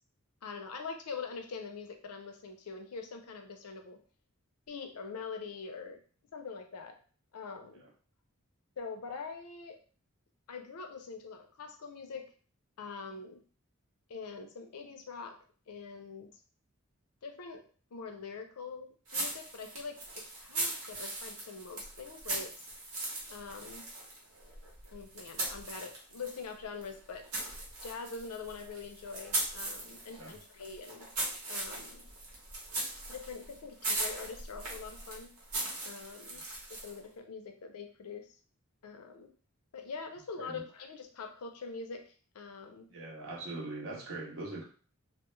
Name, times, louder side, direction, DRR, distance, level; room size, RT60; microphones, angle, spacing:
voice 1, 0.4-4.0 4.7-6.0 6.3-6.9 7.3-7.8 8.8-9.8 10.5-12.2 12.8-13.4 14.1-15.4 15.7-16.3 17.2-17.6 17.9-22.7 23.3-23.8 24.9-27.2 27.8-31.1 31.5-32.1 33.1-35.3 35.8-36.4 36.7-38.3 38.8-39.3 39.7-42.9, left 5 dB, 85° left, 5 dB, 0.5 m, -44 dB
sound 1, 19.1-26.5 26.8-37.0, right 2 dB, 85° right, 1.0 m, -39 dB
voice 2, 42.9-44.7, right 2 dB, 60° right, 0 dB, 0.6 m, -42 dB
2.2 x 2.0 x 3.0 m, 0.41 s
head